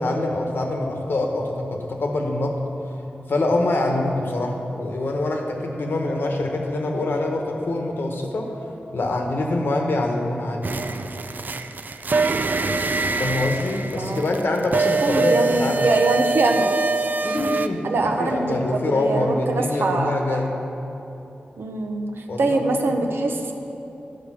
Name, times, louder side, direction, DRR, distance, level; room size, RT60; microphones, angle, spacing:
voice 1, 0.0-2.6 3.3-8.5 8.9-10.7 13.2-15.9 17.2-20.5 22.3-22.8, left 2 dB, 75° left, 2 dB, 1.1 m, -25 dB
sound 1, 10.6-17.7, right 3 dB, 55° right, 0.4 m, -24 dB
voice 2, 14.0-14.3 15.0-16.7 17.8-20.4 21.6-23.5, right 3 dB, 85° right, 4 dB, 0.8 m, -23 dB
11.5 x 5.1 x 6.2 m, 3.0 s
wide cardioid pair, 80°, 4 cm